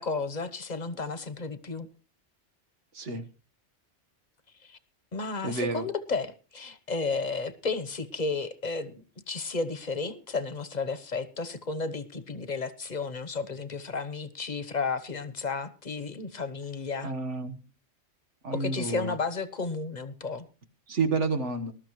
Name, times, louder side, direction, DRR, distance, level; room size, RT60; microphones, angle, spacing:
voice 1, 0.0-1.9 4.6-4.8 5.1-17.1 18.5-20.5, left 4 dB, 40° left, 13 dB, 1.1 m, -33 dB
voice 2, 2.9-3.3 5.4-5.9 17.0-17.6 18.4-19.1 20.9-21.7, right 3 dB, 80° right, 6 dB, 1.8 m, -30 dB
20.0 x 12.5 x 3.1 m, 0.33 s
omnidirectional pair, 1.2 m